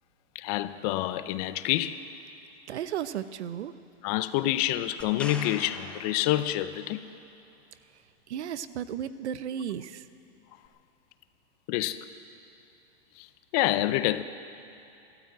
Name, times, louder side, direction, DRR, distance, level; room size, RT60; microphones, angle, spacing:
voice 1, 0.4-2.0 4.0-7.0 11.7-12.0 13.2-13.3 13.5-14.2, left 14 dB, 35° left, 0.6 m, -27 dB
voice 2, 2.7-3.7 8.3-10.0, right 9 dB, 80° right, 0.8 m, -34 dB
sound 1, 5.0-7.0 10.6-10.7, left 2 dB, 5° left, 1.0 m, -43 dB
13.0 x 13.0 x 8.6 m
hypercardioid pair, 140°, 33 cm